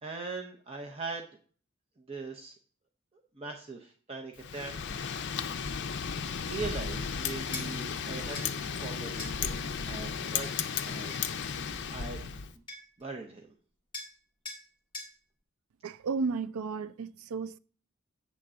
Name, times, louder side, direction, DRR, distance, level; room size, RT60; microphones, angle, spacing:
voice 1, 0.0-1.3 2.1-2.5 3.4-4.7 6.3-11.4 11.6-12.2 13.0-13.5, right 4 dB, 25° right, 0.7 m, -41 dB
Wind, 4.4-12.5, left 6 dB, 55° left, 0.5 m, -34 dB
sound 1, 7.5-7.7 8.3-8.5 9.2-9.4 10.4-11.3 12.3-12.4 12.7-13.0 13.9-14.2 14.4-14.6 14.9-15.1, left 3 dB, 20° left, 1.7 m, -41 dB
voice 2, 15.8-17.6, right 4 dB, 75° right, 0.4 m, -33 dB
8.4 x 3.7 x 6.7 m
head